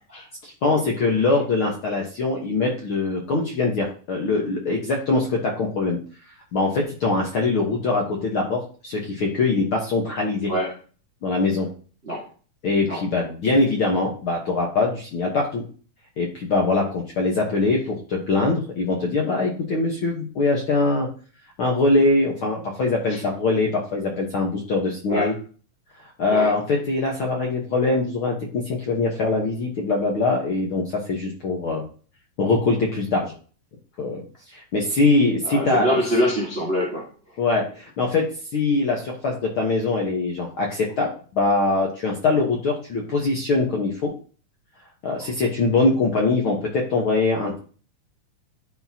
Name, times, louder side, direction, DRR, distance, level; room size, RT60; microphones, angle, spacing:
voice 1, 0.4-6.0 6.5-10.5 11.2-11.7 12.6-15.6 16.2-21.1 21.6-25.4 26.0-31.8 32.4-33.3 34.0-34.2 34.5-36.0 37.4-44.1 45.0-47.6, left 3 dB, 65° left, 0 dB, 1.3 m, -23 dB
voice 2, 10.5-10.8 12.0-12.3 12.9-13.0 23.1-23.2 25.1-25.3 26.3-26.6 35.4-37.1 45.2-45.3, equal, 60° right, -3 dB, 0.6 m, -25 dB
11.5 x 4.2 x 2.8 m, 0.39 s
omnidirectional pair, 3.9 m